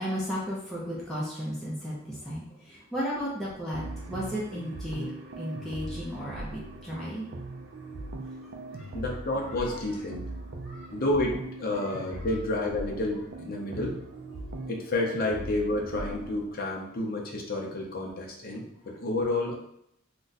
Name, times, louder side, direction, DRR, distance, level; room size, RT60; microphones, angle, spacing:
voice 1, 0.0-5.1 5.4-7.3 8.7-8.9 9.5-9.8 10.6-10.9, equal, ahead, -8 dB, 0.6 m, -34 dB
sound 1, 3.7-16.5, right 2 dB, 60° right, 0.4 m, -40 dB
voice 2, 8.9-10.2 10.9-14.0 14.7-19.6, left 2 dB, 45° left, 0 dB, 0.6 m, -30 dB
2.5 x 2.2 x 4.0 m, 0.74 s
head